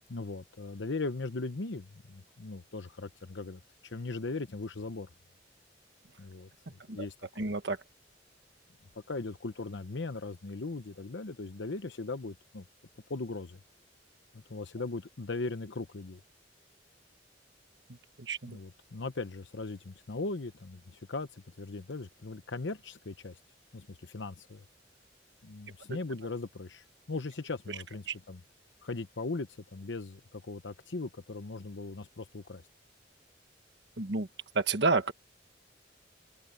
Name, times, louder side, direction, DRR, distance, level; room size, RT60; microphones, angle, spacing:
voice 1, 0.1-5.1 6.2-7.1 7.4-7.5 9.1-12.6 13.1-13.6 14.3-16.2 18.4-23.4 23.7-24.6 25.4-28.4 28.8-32.6, left 3 dB, 80° left, 0.9 m, -39 dB
voice 2, 7.4-7.8 18.2-18.6 25.9-26.0 28.1-28.2 34.0-34.3 34.5-35.1, right 3 dB, 70° right, 1.4 m, -30 dB
open air
head